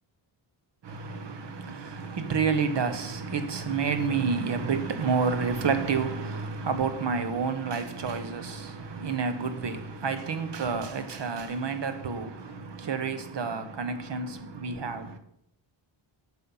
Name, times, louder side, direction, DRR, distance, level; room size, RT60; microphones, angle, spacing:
voice 1, 0.8-15.2, right 5 dB, 60° right, 1.1 m, -29 dB
8.8 x 6.3 x 5.5 m
wide cardioid pair, 155°, 49 cm